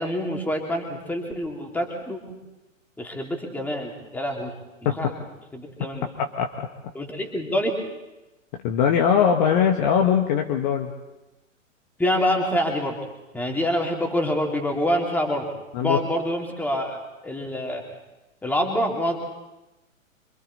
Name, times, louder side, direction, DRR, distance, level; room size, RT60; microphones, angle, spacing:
voice 1, 0.0-2.3 3.0-4.5 5.0-5.1 5.5-6.1 6.9-7.7 12.0-13.0 13.3-15.5 15.8-17.0 17.2-17.8 18.4-19.2, equal, 5° left, 1 dB, 3.0 m, -26 dB
voice 2, 6.2-6.7 8.6-10.9 15.7-16.0, left 8 dB, 35° left, 3 dB, 1.7 m, -21 dB
26.5 x 24.5 x 4.2 m, 1.0 s
figure-of-eight pair, 115°, 40 cm